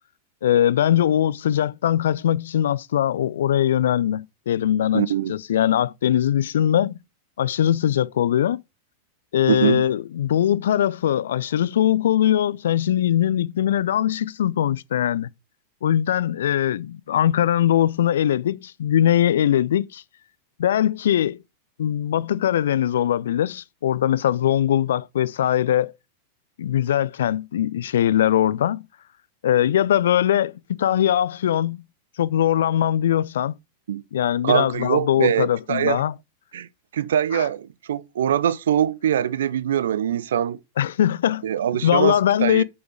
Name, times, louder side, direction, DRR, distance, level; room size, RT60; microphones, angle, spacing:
voice 1, 0.4-6.9 7.4-8.6 9.3-15.3 15.8-20.0 20.6-21.4 21.8-25.9 26.6-28.8 29.4-31.8 32.2-33.5 34.1-36.1 37.3-37.5 40.8-41.4 41.8-42.6, left 11 dB, 60° left, 0.5 m, -21 dB
voice 2, 4.9-5.3 9.5-9.8 33.9-34.0 34.4-36.0 36.5-36.7 36.9-40.6 41.4-42.6, right 10 dB, 60° right, 0.7 m, -23 dB
8.4 x 7.0 x 4.9 m
figure-of-eight pair, 90°, 0 cm